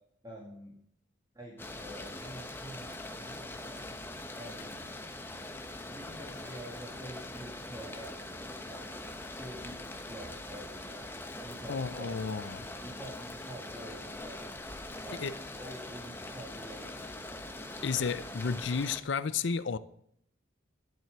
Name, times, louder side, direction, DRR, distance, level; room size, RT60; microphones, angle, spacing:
voice 1, 0.2-0.7 1.3-3.9 4.3-4.8 5.9-8.9 9.3-11.1 11.4-12.2 12.8-14.5 15.0-15.2 15.6-17.1, right 1 dB, 20° right, 2.2 m, -47 dB
sound 1, 1.6-19.0, left 2 dB, 10° left, 0.9 m, -43 dB
voice 2, 11.7-12.6 15.2-15.3 17.8-19.8, left 5 dB, 65° left, 0.5 m, -32 dB
12.0 x 7.8 x 6.7 m
head